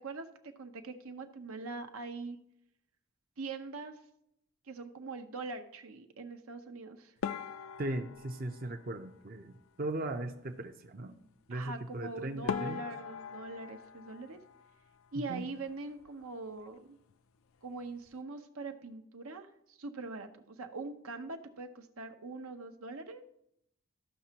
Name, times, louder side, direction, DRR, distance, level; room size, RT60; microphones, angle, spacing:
voice 1, 0.0-2.4 3.4-4.0 4.7-7.1 11.5-14.4 15.1-17.0 17.6-23.2, right 3 dB, 85° right, 7 dB, 0.9 m, -42 dB
sound 1, 7.2-9.7 11.9-12.0 12.5-15.2 15.5-16.3 16.6-16.8 17.1-17.2 17.8-18.1, left 7 dB, 75° left, 0.4 m, -42 dB
voice 2, 7.8-11.2 11.5-12.9 15.3-15.4, right 1 dB, 45° right, 5 dB, 0.5 m, -38 dB
13.5 x 5.9 x 2.9 m, 0.75 s
head